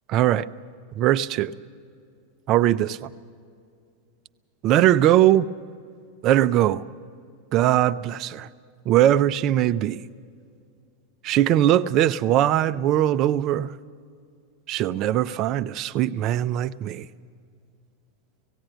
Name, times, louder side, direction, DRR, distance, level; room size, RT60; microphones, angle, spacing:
voice 1, 0.1-0.5 1.0-1.5 2.5-3.1 4.6-5.5 6.2-6.8 7.5-8.5 8.9-10.0 11.2-13.7 14.7-17.1, right 12 dB, 30° right, 13 dB, 0.4 m, -20 dB
18.0 x 16.0 x 9.0 m, 2.3 s
supercardioid pair, 175°, 0 cm